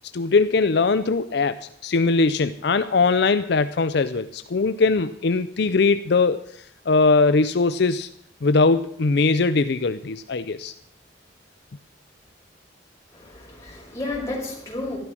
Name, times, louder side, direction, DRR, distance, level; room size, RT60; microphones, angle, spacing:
voice 1, 0.1-8.1 8.4-10.7, left 4 dB, 60° left, 11 dB, 0.5 m, -21 dB
voice 2, 13.1-15.0, left 2 dB, 15° left, -4 dB, 5.2 m, -32 dB
13.5 x 12.0 x 6.2 m, 0.68 s
head